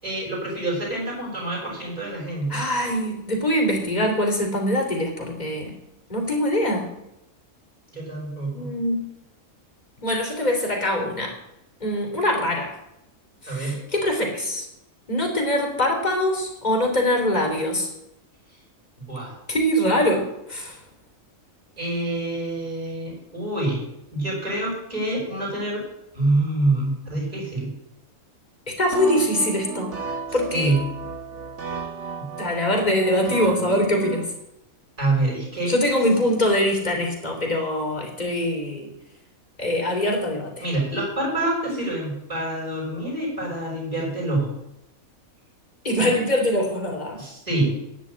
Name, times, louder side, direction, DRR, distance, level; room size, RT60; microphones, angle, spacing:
voice 1, 0.0-2.6 7.9-8.7 13.5-13.8 19.0-19.3 21.8-23.8 24.1-25.8 26.1-27.7 30.3-30.8 32.2-32.3 35.0-35.7 36.9-37.1 40.6-44.5 47.2-47.7, right 2 dB, 25° right, -4 dB, 5.8 m, -26 dB
voice 2, 2.5-5.7 6.1-6.9 8.5-9.1 10.0-11.3 11.8-12.7 13.4-14.6 15.1-17.9 19.5-20.8 28.8-30.0 30.3-30.7 32.4-34.3 35.7-38.9 39.6-40.6 45.8-47.2, left 1 dB, 30° left, 1 dB, 3.3 m, -23 dB
sound 1, 28.9-34.3, right 5 dB, 55° right, 1.8 m, -33 dB
10.0 x 8.3 x 8.7 m, 0.84 s
omnidirectional pair, 1.5 m